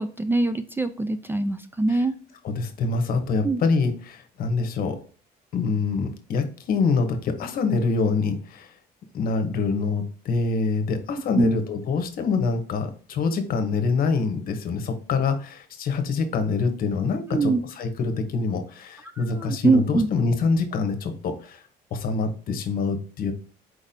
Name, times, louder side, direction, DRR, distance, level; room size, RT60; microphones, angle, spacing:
voice 1, 0.0-2.1 3.4-3.6 11.3-11.6 17.3-17.6 19.2-20.1, right 3 dB, 15° right, 10 dB, 0.3 m, -23 dB
voice 2, 2.4-5.0 5.5-8.7 9.1-21.6 21.9-23.3, left 4 dB, 60° left, 7 dB, 1.0 m, -25 dB
4.6 x 4.0 x 2.7 m, 0.42 s
cardioid pair, 110°, 17 cm